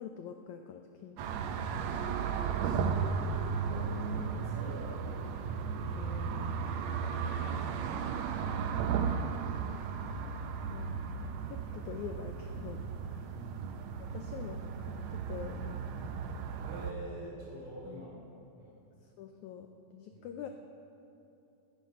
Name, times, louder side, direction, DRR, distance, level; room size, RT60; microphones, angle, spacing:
voice 1, 0.0-1.3 5.9-6.7 8.4-8.6 10.7-10.9 11.5-13.3 14.1-15.9 17.8-18.1 18.3-18.4 19.0-20.5, left 8 dB, 85° left, 5 dB, 1.7 m, -45 dB
sound 1, 1.2-16.9, right 6 dB, 85° right, 1.5 m, -35 dB
voice 2, 2.6-3.2 3.5-5.2 13.3-13.6 16.6-18.1 18.6-18.7 20.1-20.3, right 1 dB, 60° right, -5 dB, 5.3 m, -46 dB
19.0 x 9.7 x 5.5 m, 2.7 s
omnidirectional pair, 4.1 m